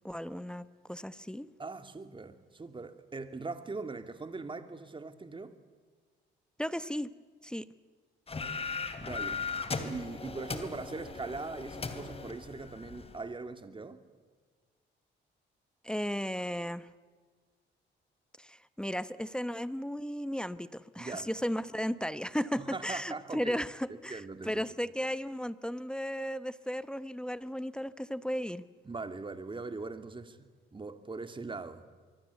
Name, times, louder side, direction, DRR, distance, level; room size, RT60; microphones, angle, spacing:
voice 1, 0.0-1.5 6.6-7.1 7.4-7.7 15.8-16.9 18.4-28.6, equal, 5° left, 15 dB, 0.9 m, -35 dB
voice 2, 1.6-5.5 9.0-9.5 9.8-14.0 21.0-21.3 22.5-23.6 23.9-24.7 28.8-31.9, right 3 dB, 25° right, 9 dB, 2.4 m, -41 dB
sound 1, 8.3-13.2, left 4 dB, 30° left, 3.0 m, -38 dB
24.5 x 24.0 x 8.3 m, 1.5 s
cardioid pair, 90°, 20 cm